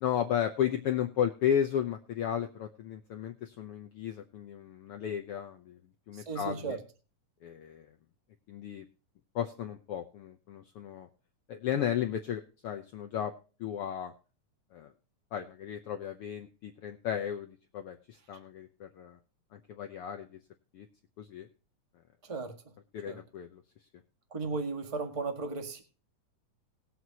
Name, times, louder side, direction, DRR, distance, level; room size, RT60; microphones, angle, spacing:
voice 1, 0.0-5.8 6.1-6.8 7.4-7.9 8.5-8.8 9.3-11.1 11.5-13.3 13.6-14.1 14.7-14.9 15.3-19.2 19.5-20.4 20.7-20.9 21.2-21.5 22.9-23.6, left 9 dB, 75° left, 1.3 m, -34 dB
voice 2, 6.1-6.8 22.2-22.6 23.1-23.2 24.3-25.8, right 4 dB, 35° right, 0.5 m, -35 dB
20.0 x 7.8 x 2.8 m
omnidirectional pair, 3.5 m